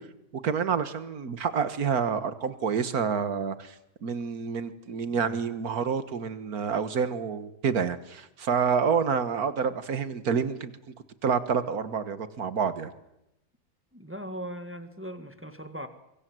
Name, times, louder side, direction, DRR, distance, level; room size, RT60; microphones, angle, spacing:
voice 1, 0.4-3.7 4.0-10.7 11.2-12.9, right 6 dB, 50° right, 12 dB, 1.7 m, -28 dB
voice 2, 5.1-5.4 13.9-15.9, equal, 5° right, 8 dB, 1.5 m, -39 dB
24.5 x 23.5 x 7.8 m, 0.86 s
omnidirectional pair, 2.2 m